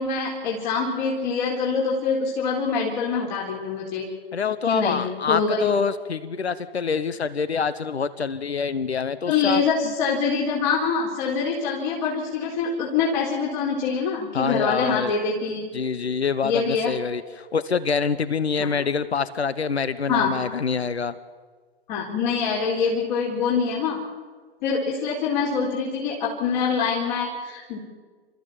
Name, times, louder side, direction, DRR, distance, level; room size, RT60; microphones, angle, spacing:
voice 1, 0.0-4.0 4.6-5.6 9.3-15.6 16.4-16.9 18.6-18.7 20.1-20.3 21.9-24.0 24.6-27.8, left 5 dB, 45° left, -3 dB, 4.3 m, -25 dB
voice 2, 4.3-9.6 14.3-15.1 15.7-21.1, left 5 dB, 90° left, 15 dB, 1.0 m, -26 dB
29.5 x 14.0 x 7.3 m, 1.5 s
hypercardioid pair, 120°, 31 cm